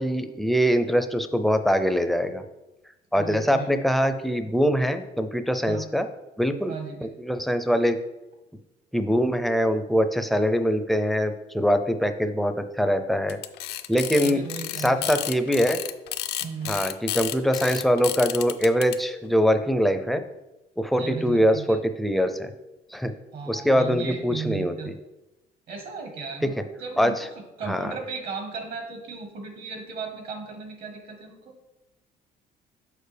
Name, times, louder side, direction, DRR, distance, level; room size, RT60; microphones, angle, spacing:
voice 1, 0.0-2.4 3.1-6.1 6.4-6.7 7.0-8.0 8.9-13.4 13.9-14.4 14.8-15.8 16.7-20.2 20.8-22.5 22.9-23.1 23.5-24.9 26.4-26.5 27.0-27.3 27.7-27.9, equal, ahead, 8 dB, 0.4 m, -23 dB
voice 2, 3.2-3.7 5.7-5.8 6.7-7.1 14.2-15.2 16.4-16.7 21.0-21.8 23.3-24.9 25.7-27.3 27.6-31.5, right 5 dB, 65° right, 3 dB, 1.4 m, -36 dB
sound 1, 13.3-19.0, left 13 dB, 75° left, 0.4 m, -31 dB
6.6 x 4.6 x 3.4 m, 0.98 s
cardioid pair, 110°, 17 cm